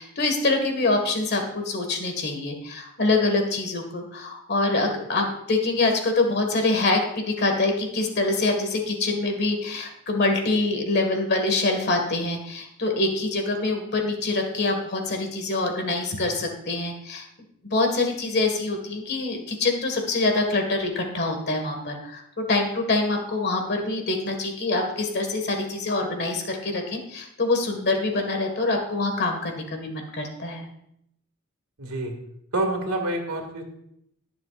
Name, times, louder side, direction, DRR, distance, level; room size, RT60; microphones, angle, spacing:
voice 1, 0.0-17.3 17.7-30.7, left 2 dB, 45° left, 4 dB, 1.8 m, -25 dB
voice 2, 31.8-32.1 32.5-33.6, right 1 dB, 75° right, 3 dB, 2.2 m, -27 dB
21.0 x 7.2 x 2.5 m, 0.76 s
head